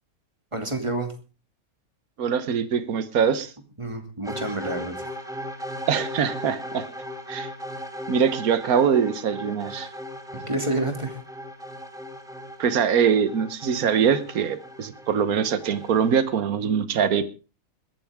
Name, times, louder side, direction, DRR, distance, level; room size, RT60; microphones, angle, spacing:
voice 1, 0.5-1.1 3.8-5.1 10.3-11.2, right 2 dB, 20° right, 5 dB, 2.6 m, -28 dB
voice 2, 2.2-3.5 5.9-6.9 7.3-7.5 8.1-9.9 12.6-17.3, right 7 dB, 75° right, 13 dB, 1.6 m, -23 dB
sound 1, 4.3-16.3, equal, ahead, 2.2 m, -38 dB
20.5 x 13.0 x 3.6 m, 0.33 s
omnidirectional pair, 1.6 m